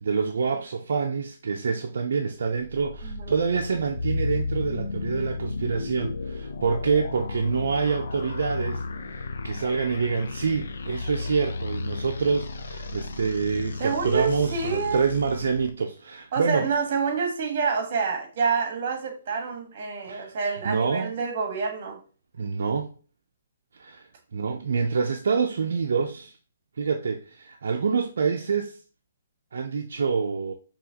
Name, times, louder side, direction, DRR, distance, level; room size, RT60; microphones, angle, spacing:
voice 1, 0.0-16.7 20.1-20.4 20.6-21.1 22.4-22.9 23.8-26.3 26.8-28.8 29.5-30.5, right 5 dB, 70° right, 0.5 m, -27 dB
sound 1, 2.4-15.7, left 3 dB, 70° left, 0.5 m, -33 dB
voice 2, 3.0-3.3 13.8-15.1 16.3-22.0, right 5 dB, 45° right, 1.4 m, -27 dB
6.1 x 3.0 x 2.8 m
hypercardioid pair, 160°, 0 cm